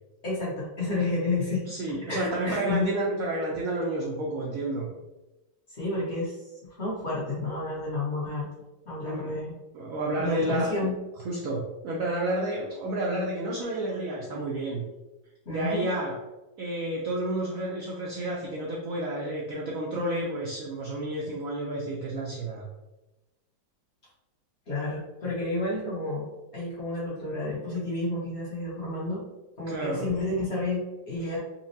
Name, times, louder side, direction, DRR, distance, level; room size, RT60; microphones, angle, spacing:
voice 1, 0.2-1.6 2.1-2.9 5.7-8.5 8.9-9.5 10.2-10.9 15.4-15.9 24.7-26.3 26.5-29.3 29.6-31.4, left 2 dB, 45° left, -7 dB, 1.1 m, -30 dB
voice 2, 1.7-4.9 9.0-9.4 9.7-10.8 11.2-14.8 15.5-16.1 16.6-22.7 29.7-30.1 31.2-31.3, right 1 dB, 75° right, -3 dB, 0.8 m, -30 dB
4.1 x 2.1 x 2.7 m, 1.0 s
omnidirectional pair, 2.0 m